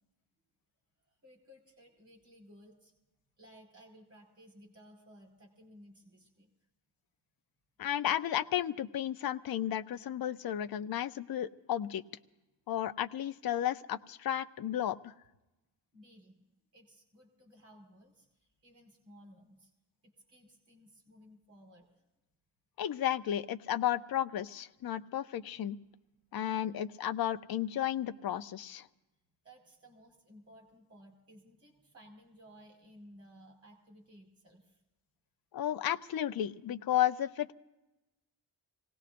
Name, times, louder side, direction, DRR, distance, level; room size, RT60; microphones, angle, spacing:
voice 1, 1.1-2.9 3.4-6.5 15.9-16.4 16.7-19.7 20.0-22.1 29.4-34.8, equal, 30° right, 1 dB, 4.8 m, -58 dB
voice 2, 7.8-12.0 12.7-15.1 22.8-25.8 26.3-28.9 35.5-37.5, left 11 dB, 55° left, 12 dB, 0.5 m, -33 dB
26.5 x 18.5 x 2.5 m, 1.0 s
wide cardioid pair, 160°, 45 cm